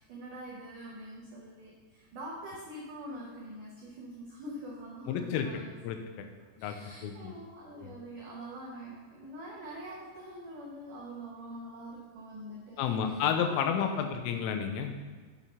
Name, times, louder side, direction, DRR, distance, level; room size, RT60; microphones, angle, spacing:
voice 1, 0.0-5.8 6.4-14.0, right 1 dB, 85° right, -4 dB, 1.8 m, -45 dB
voice 2, 5.1-5.5 5.8-6.3 6.6-6.8 7.0-7.3 12.8-14.9, left 7 dB, 80° left, 5 dB, 3.4 m, -31 dB
8.7 x 7.2 x 5.7 m, 1.4 s
omnidirectional pair, 6.0 m